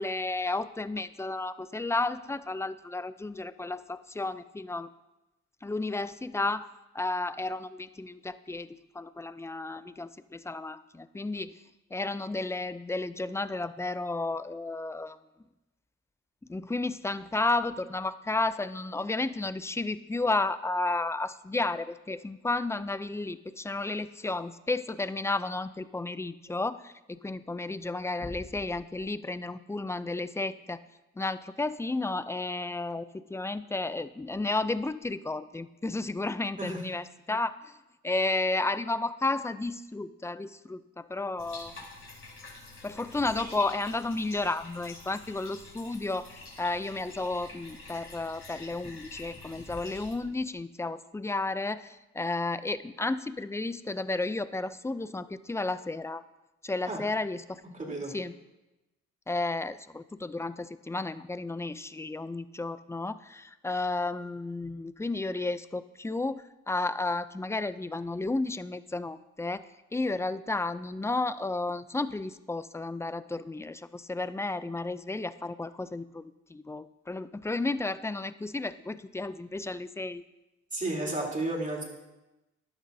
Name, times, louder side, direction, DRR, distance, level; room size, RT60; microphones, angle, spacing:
voice 1, 0.0-4.9 5.6-6.7 6.9-8.7 8.9-11.6 11.9-15.2 16.5-30.8 31.2-37.7 38.0-41.7 42.8-56.2 56.6-58.3 59.3-80.2, left 2 dB, 10° left, 14 dB, 0.4 m, -32 dB
Bathtub (filling or washing), 41.4-50.1, left 2 dB, 45° left, 3.7 m, -47 dB
voice 2, 57.7-58.1 80.7-81.8, right 2 dB, 25° right, -1 dB, 3.4 m, -32 dB
15.0 x 11.0 x 2.7 m, 0.99 s
cardioid pair, 90°, 30 cm